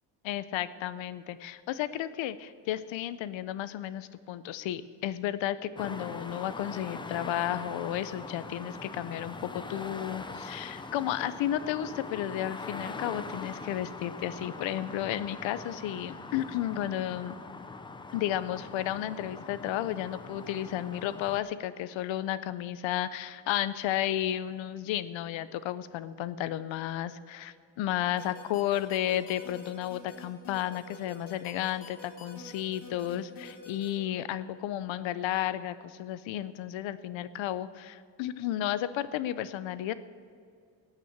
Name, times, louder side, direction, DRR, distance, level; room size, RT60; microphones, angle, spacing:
voice 1, 0.2-17.3 18.1-39.9, left 12 dB, 80° left, 15 dB, 0.7 m, -33 dB
sound 1, 5.8-21.4, left 3 dB, 10° left, 0.3 m, -42 dB
sound 2, 28.2-33.9, left 4 dB, 50° left, 2.7 m, -47 dB
17.5 x 5.9 x 7.9 m, 2.2 s
cardioid pair, 175°, 45 cm